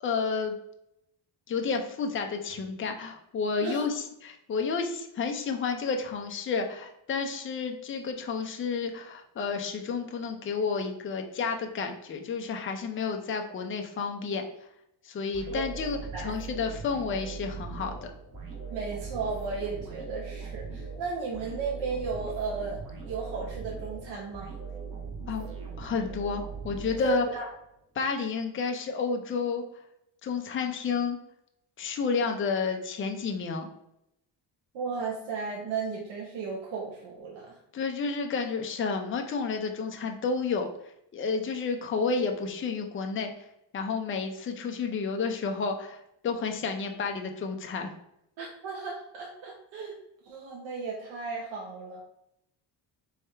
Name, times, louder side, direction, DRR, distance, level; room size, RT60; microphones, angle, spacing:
voice 1, 0.0-0.5 1.5-14.4 15.0-18.0 25.3-27.3 27.9-29.6 30.2-31.2 31.8-33.7 37.7-40.7 41.1-43.3 43.7-47.9, left 5 dB, 30° left, 4 dB, 0.5 m, -31 dB
sound 1, 15.3-27.5, right 5 dB, 45° right, 1.5 m, -40 dB
voice 2, 18.7-22.8 23.0-24.5 27.0-27.4 34.7-37.6 48.4-50.0 50.2-52.0, right 4 dB, 85° right, -3 dB, 1.0 m, -34 dB
3.5 x 3.3 x 4.3 m, 0.80 s
cardioid pair, 155°, 45 cm